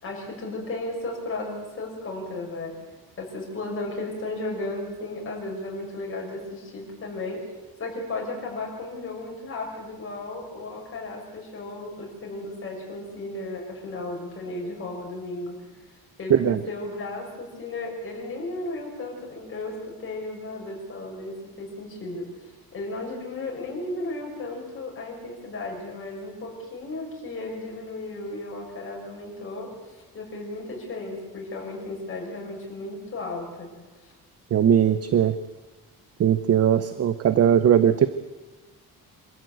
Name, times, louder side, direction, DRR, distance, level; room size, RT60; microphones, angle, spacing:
voice 1, 0.0-2.8 3.2-7.4 7.8-15.6 16.2-33.7, left 2 dB, 35° left, -1 dB, 6.1 m, -34 dB
voice 2, 16.3-16.6 34.5-35.3 36.2-38.1, right 9 dB, 40° right, 13 dB, 0.7 m, -19 dB
26.0 x 14.0 x 8.0 m, 1.2 s
cardioid pair, 170°, 37 cm